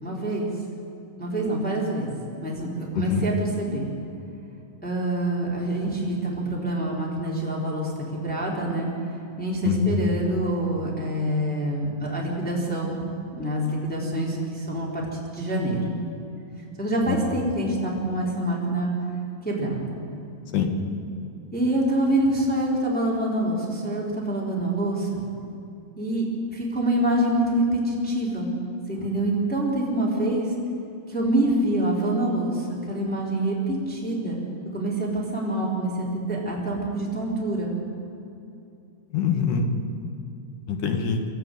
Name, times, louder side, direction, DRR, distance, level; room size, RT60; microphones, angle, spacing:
voice 1, 0.0-0.5 1.2-2.1 2.4-3.9 4.8-8.9 9.4-13.0 13.3-15.0 15.3-15.8 16.8-18.9 19.4-20.0 21.5-25.2 26.0-28.5 28.9-30.5 31.1-34.4 34.7-37.7, right 1 dB, 5° left, -4 dB, 3.6 m, -26 dB
voice 2, 2.9-3.2 9.6-10.0 17.1-17.2 20.5-20.7 39.1-39.7 40.7-41.2, left 6 dB, 85° left, 5 dB, 3.3 m, -24 dB
24.5 x 13.5 x 9.2 m, 2.7 s
omnidirectional pair, 3.5 m